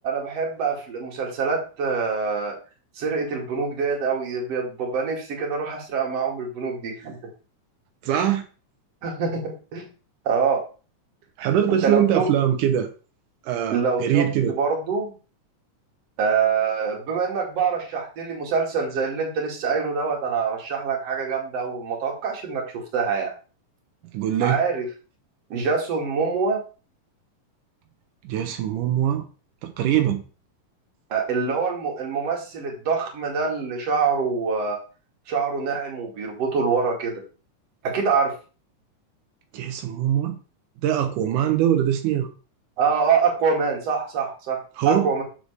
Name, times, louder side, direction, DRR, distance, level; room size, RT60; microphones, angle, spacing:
voice 1, 0.0-2.6 3.0-7.2 8.1-8.2 9.0-9.8 10.2-10.6 11.8-12.3 13.7-15.1 16.2-23.3 24.4-24.9 25.5-26.6 31.1-34.8 35.3-37.2 37.8-38.3 42.8-44.6 44.8-45.2, right 5 dB, 55° right, 0 dB, 3.0 m, -25 dB
voice 2, 8.0-8.4 11.4-12.9 13.4-14.6 24.1-24.6 28.2-29.3 29.6-30.2 39.5-40.4 40.8-42.3 44.8-45.1, right 10 dB, 85° right, 5 dB, 2.4 m, -22 dB
7.8 x 7.2 x 3.4 m, 0.36 s
omnidirectional pair, 3.6 m